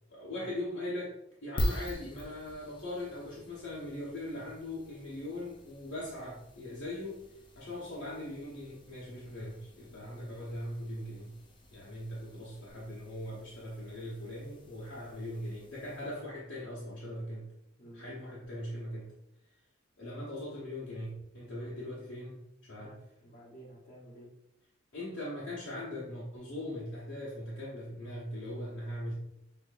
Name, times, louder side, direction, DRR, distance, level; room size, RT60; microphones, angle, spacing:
voice 1, 0.1-1.1 1.4-7.2 7.5-11.4 11.7-17.5 17.9-19.1 20.0-23.0 24.9-29.1, left 1 dB, 75° left, -8 dB, 1.2 m, -40 dB
sound 1, 1.6-16.3, equal, 25° left, 0.6 m, -43 dB
voice 2, 17.8-18.1 22.8-24.3, right 1 dB, 40° left, -7 dB, 1.1 m, -52 dB
6.7 x 3.0 x 2.6 m, 0.81 s
head